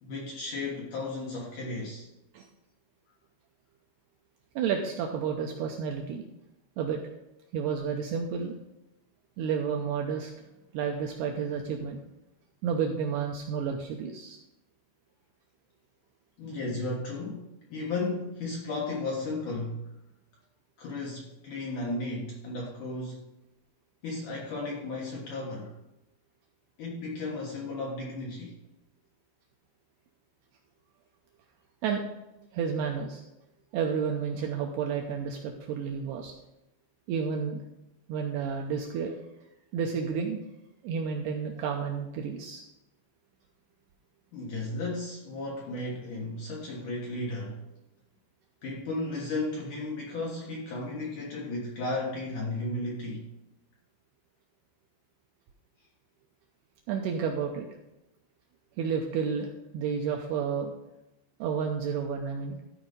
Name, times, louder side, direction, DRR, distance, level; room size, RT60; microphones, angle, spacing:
voice 1, 0.0-2.1 16.4-19.9 20.8-23.3 24.0-25.7 26.8-28.6 44.3-47.6 48.6-53.2, left 2 dB, 60° left, -3 dB, 2.2 m, -34 dB
voice 2, 4.6-6.2 6.8-7.0 7.5-8.6 9.4-10.3 10.7-12.0 12.6-14.4 31.8-32.0 32.5-33.2 33.7-36.3 37.1-37.6 38.1-39.2 39.7-40.4 40.8-42.6 56.9-57.7 58.8-60.7 61.4-62.6, right 6 dB, 80° right, 2 dB, 2.4 m, -31 dB
13.5 x 4.8 x 5.3 m, 0.91 s
omnidirectional pair, 5.4 m